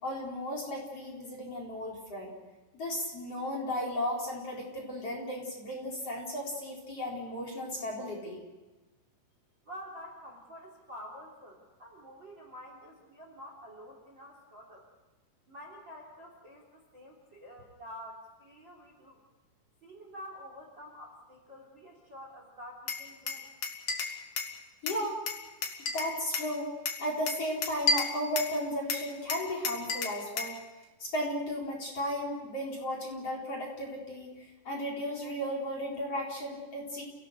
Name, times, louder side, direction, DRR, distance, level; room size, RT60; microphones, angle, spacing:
voice 1, 0.0-2.3 2.7-8.4 24.8-25.2 25.8-26.7 27.0-30.6 31.0-37.0, equal, 30° left, -1 dB, 4.7 m, -35 dB
voice 2, 9.6-14.9 15.5-19.2 19.8-23.4, equal, 25° right, 1 dB, 3.2 m, -48 dB
Glass, 22.9-24.5 24.9-26.5 26.9-28.6 28.9-30.6, left 4 dB, 45° left, 2.5 m, -32 dB
30.0 x 18.0 x 6.7 m, 1.2 s
omnidirectional pair, 6.0 m